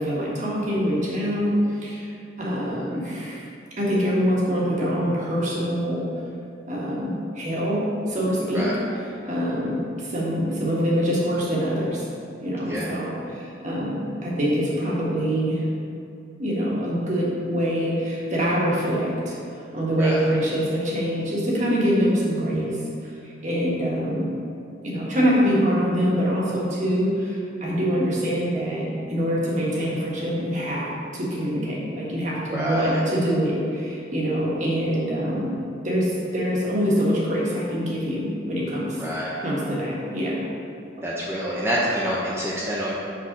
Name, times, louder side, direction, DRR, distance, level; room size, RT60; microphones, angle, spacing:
voice 1, 0.0-2.1 2.4-3.5 3.8-6.0 6.7-8.7 9.2-12.1 12.4-15.6 16.4-19.4 19.7-24.3 24.8-35.5 35.8-39.0 39.4-40.4, equal, 40° right, -5 dB, 1.5 m, -24 dB
voice 2, 32.5-33.0 39.0-39.4 41.0-42.9, equal, 15° right, -7 dB, 0.7 m, -26 dB
6.2 x 4.1 x 5.3 m, 2.6 s
head